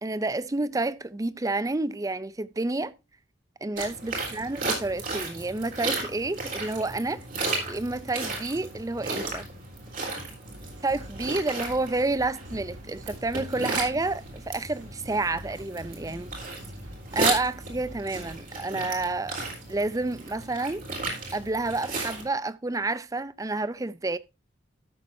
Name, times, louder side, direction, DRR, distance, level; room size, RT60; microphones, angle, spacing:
voice 1, 0.0-2.9 3.6-7.2 7.7-9.4 10.8-16.3 17.1-19.4 19.7-20.8 21.3-24.2, right 2 dB, 20° right, 0.5 m, -29 dB
sound 1, 3.8-22.2, right 3 dB, 45° right, 4.0 m, -34 dB
sound 2, 10.4-18.4, right 1 dB, 75° right, 2.8 m, -47 dB
13.0 x 7.6 x 2.7 m
head